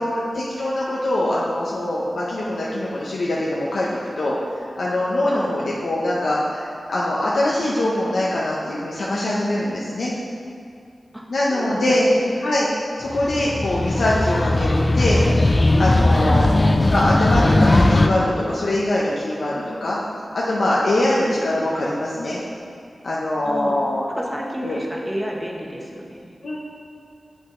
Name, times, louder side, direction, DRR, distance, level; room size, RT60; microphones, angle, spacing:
voice 1, 0.0-3.9 4.2-4.4 4.8-10.1 11.3-12.1 12.4-12.7 13.0-15.2 15.8-16.6 16.9-20.0 20.3-22.4 23.0-24.1 24.6-24.8 26.4-26.6, left 1 dB, 80° left, -6 dB, 0.8 m, -23 dB
voice 2, 11.5-12.4 16.2-16.5 23.4-23.8 24.1-26.2, equal, 5° right, -2 dB, 1.0 m, -31 dB
sound 1, 13.1-18.1, left 2 dB, 35° left, 0.4 m, -18 dB
7.9 x 5.3 x 3.7 m, 2.4 s
wide cardioid pair, 70°, 0 cm